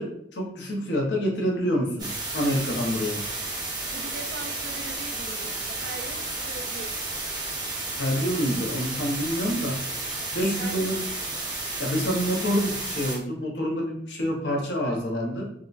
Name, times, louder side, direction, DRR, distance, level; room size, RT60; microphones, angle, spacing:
voice 1, 0.0-3.3 8.0-9.8 10.3-11.0 11.8-15.5, equal, 65° left, 0.8 m, -27 dB
sound 1, 2.0-13.2, right 2 dB, 25° right, 0.9 m, -32 dB
voice 2, 3.9-7.1 10.5-11.0, right 4 dB, 50° right, 0.4 m, -41 dB
3.7 x 2.1 x 2.5 m
head